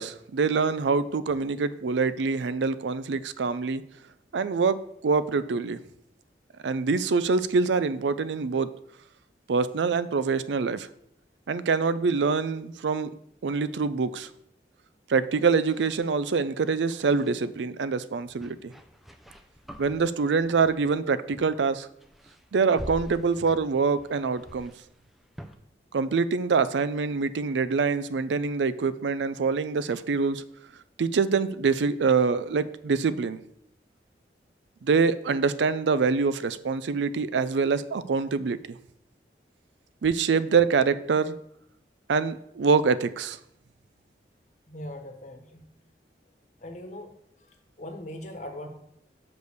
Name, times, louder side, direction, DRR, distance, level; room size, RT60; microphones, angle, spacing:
voice 1, 0.0-3.8 4.3-4.8 5.0-5.8 6.6-8.7 9.5-10.9 11.5-13.1 13.4-14.3 15.1-18.7 19.8-21.9 22.5-24.7 25.9-30.4 31.0-33.4 34.8-38.8 40.0-41.3 42.1-43.4, right 5 dB, 90° right, 14 dB, 0.4 m, -25 dB
sound 1, 15.6-17.4 18.3-21.0 21.3-21.7 21.9-25.6, equal, ahead, 0.5 m, -46 dB
voice 2, 44.7-45.6 46.6-47.1 47.8-48.7, left 1 dB, 40° left, 4 dB, 1.2 m, -40 dB
6.2 x 5.3 x 6.6 m, 0.74 s
head